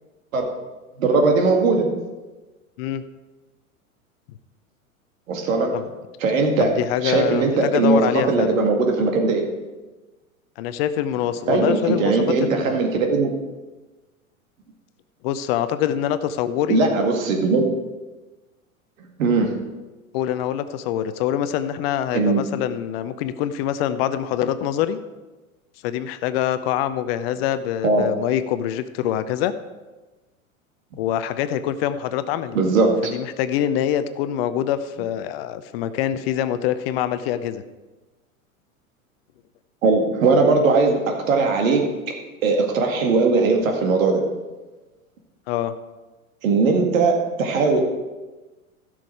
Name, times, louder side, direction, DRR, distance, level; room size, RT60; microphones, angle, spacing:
voice 1, 1.0-1.9 5.3-5.7 6.2-6.7 7.0-8.0 8.3-9.4 11.5-13.3 16.7-17.6 19.2-19.5 22.1-22.4 27.8-28.0 32.5-32.9 39.8-41.8 42.4-44.2 46.4-47.8, right 4 dB, 65° right, 2 dB, 2.2 m, -19 dB
voice 2, 6.6-8.6 10.6-12.8 15.2-16.8 20.1-25.0 25.8-29.5 31.0-32.6 33.1-37.6 45.5-45.7, left 10 dB, 45° left, 12 dB, 0.7 m, -25 dB
15.5 x 6.2 x 4.6 m, 1.2 s
figure-of-eight pair, 85°, 43 cm